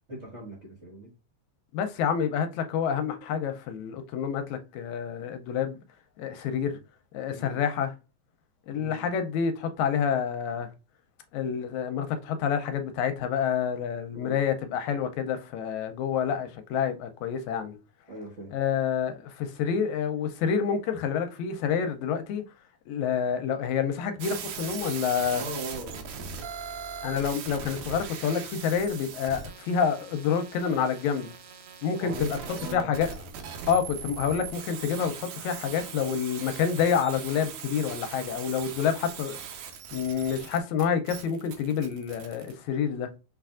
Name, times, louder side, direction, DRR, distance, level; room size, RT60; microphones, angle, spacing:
voice 1, 0.1-1.1 6.5-6.8 7.3-7.6 8.7-9.0 14.0-14.4 18.1-18.5 25.3-26.3 32.0-32.9, right 1 dB, 70° right, 0.6 m, -40 dB
voice 2, 1.7-5.8 6.2-6.8 7.1-7.9 8.7-10.7 11.3-17.8 18.5-22.4 22.9-25.4 27.0-31.3 31.8-32.3 32.7-33.1 33.7-39.4 39.9-43.1, left 7 dB, 80° left, 1.8 m, -28 dB
sound 1, 24.2-42.5, right 6 dB, 90° right, 2.3 m, -40 dB
6.0 x 3.3 x 2.4 m
omnidirectional pair, 3.4 m